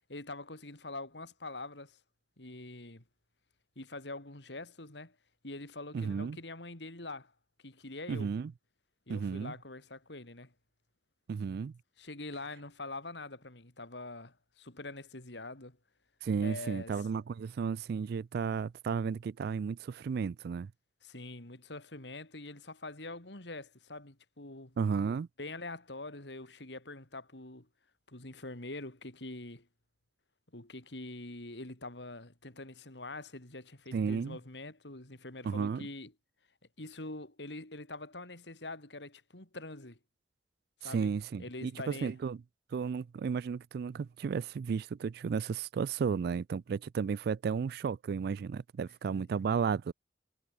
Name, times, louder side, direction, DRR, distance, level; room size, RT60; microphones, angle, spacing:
voice 1, 0.1-2.0 2.4-3.0 3.8-5.2 5.4-7.3 7.6-8.3 9.1-10.5 12.0-15.8 16.4-16.9 21.0-24.8 25.4-27.7 28.1-29.7 30.5-36.1 36.8-40.0 40.8-41.1 41.4-42.2 49.1-49.3, left 2 dB, 75° left, 3.6 m, -44 dB
voice 2, 5.9-6.4 8.1-8.5 9.1-9.5 11.3-11.7 16.2-20.7 24.8-25.3 33.9-34.4 35.4-35.9 40.8-42.4 42.7-49.9, right 6 dB, 60° right, 0.3 m, -33 dB
head